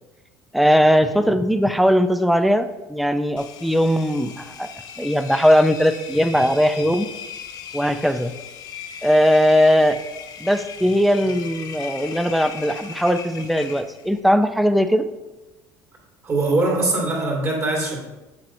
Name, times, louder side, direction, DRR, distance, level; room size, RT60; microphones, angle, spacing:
voice 1, 0.5-4.7 5.0-7.1 7.7-8.4 9.0-10.0 10.4-15.1, equal, ahead, 10 dB, 0.4 m, -19 dB
Engine, 3.4-14.2, left 6 dB, 50° left, 0.7 m, -38 dB
voice 2, 16.2-18.0, right 2 dB, 35° right, -2 dB, 2.3 m, -22 dB
7.7 x 7.3 x 2.6 m, 1.1 s
cardioid pair, 115°, 8 cm